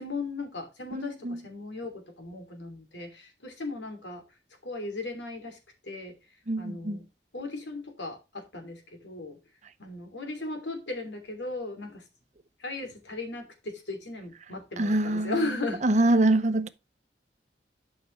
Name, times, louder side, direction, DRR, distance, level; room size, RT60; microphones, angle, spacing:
voice 1, 0.0-4.2 4.6-5.6 5.8-6.1 6.6-7.0 7.3-9.4 9.8-12.0 12.6-15.8, left 2 dB, 85° left, 2.9 m, -36 dB
voice 2, 0.9-1.4 6.5-7.0 14.8-15.4 15.8-16.7, right 2 dB, 40° right, 0.7 m, -24 dB
11.5 x 5.8 x 3.2 m
head